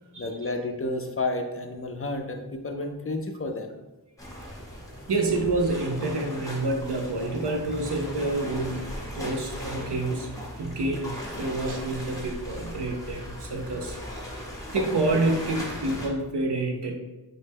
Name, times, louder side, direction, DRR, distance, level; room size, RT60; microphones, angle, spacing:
voice 1, 0.2-3.7, left 2 dB, 35° left, 5 dB, 0.4 m, -31 dB
sound 1, 4.2-16.1, equal, 10° left, 0.9 m, -37 dB
voice 2, 5.1-10.3 10.6-14.0 14.7-17.0, right 2 dB, 90° right, 2 dB, 0.6 m, -28 dB
3.9 x 2.1 x 3.3 m, 1.1 s
wide cardioid pair, 45°, 40 cm